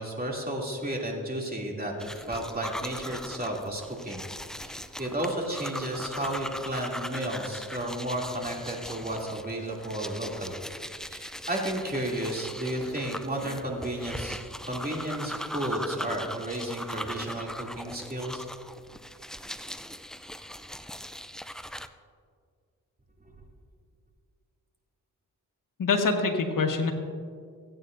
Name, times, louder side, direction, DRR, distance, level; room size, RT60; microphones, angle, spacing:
voice 1, 0.0-4.2 4.6-10.6 11.1-14.4 14.7-18.5, right 1 dB, 25° right, -1 dB, 2.8 m, -33 dB
sound 1, 2.0-21.9, equal, ahead, 0.5 m, -39 dB
voice 2, 25.8-26.9, left 4 dB, 65° left, 3 dB, 1.6 m, -25 dB
16.5 x 9.1 x 2.6 m, 2.1 s
supercardioid pair, 50°, 36 cm